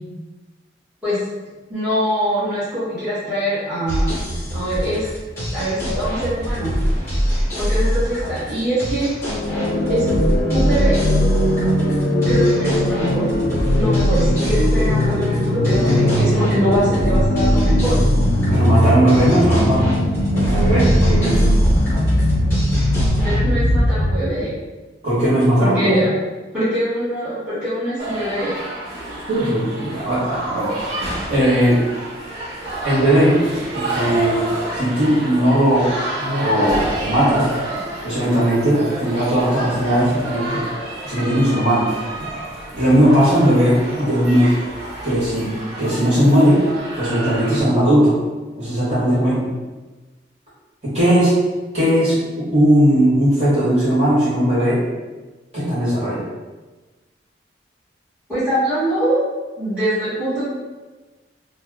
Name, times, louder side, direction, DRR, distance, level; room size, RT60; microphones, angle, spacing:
voice 1, 1.7-4.1 4.5-5.0 5.5-6.7 7.6-9.1 9.9-10.1 10.5-11.0 12.2-13.3 13.7-18.0 23.2-24.5 25.6-26.1 26.5-28.5 58.3-59.2 59.6-60.4, equal, 5° right, -15 dB, 1.4 m, -23 dB
sound 1, 3.9-23.4, equal, 15° left, 1.3 m, -23 dB
sound 2, 9.3-24.2, left 1 dB, 55° left, 0.5 m, -19 dB
voice 2, 15.7-16.2 18.5-19.9 20.3-21.4 25.0-26.0 29.3-30.7 31.3-31.8 32.8-34.4 34.7-35.9 36.2-37.5 38.0-40.6 41.0-41.9 42.7-44.5 45.0-45.5 45.8-46.6 47.0-48.2 48.6-49.5 50.8-51.4 51.7-54.8 55.5-56.2, equal, 35° right, -11 dB, 1.5 m, -17 dB
sound 3, 28.0-47.6, right 1 dB, 75° right, 0.7 m, -29 dB
2.8 x 2.2 x 3.5 m, 1.2 s
head